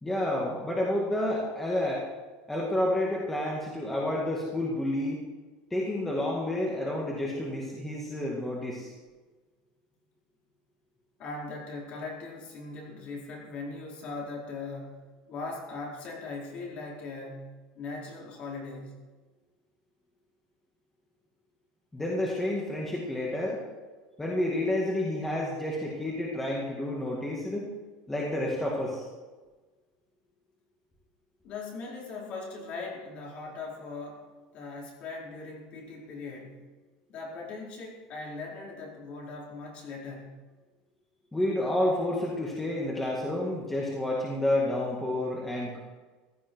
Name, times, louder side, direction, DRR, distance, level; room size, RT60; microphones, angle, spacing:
voice 1, 0.0-2.0 2.5-5.2 5.7-8.9 21.9-23.6 24.2-27.7 28.1-29.1 41.3-45.8, left 1 dB, 5° left, -3 dB, 2.1 m, -30 dB
voice 2, 11.2-19.0 31.4-34.3 34.5-36.7 37.1-40.4, left 3 dB, 40° left, -2 dB, 4.2 m, -40 dB
15.5 x 13.5 x 4.6 m, 1.3 s
cardioid pair, 165°, 3 cm